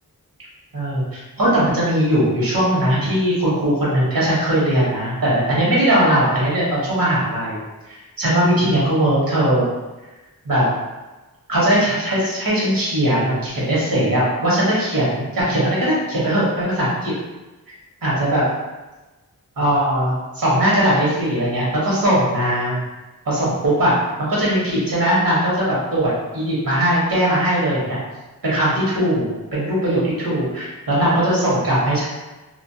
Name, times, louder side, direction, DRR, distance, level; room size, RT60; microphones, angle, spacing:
voice 1, 0.7-7.6 7.9-9.7 10.4-10.6 11.5-17.1 18.0-18.4 19.6-22.8 23.3-28.0 28.4-32.1, right 1 dB, 75° right, -7 dB, 1.1 m, -19 dB
2.5 x 2.1 x 2.7 m, 1.1 s
wide cardioid pair, 60°, 36 cm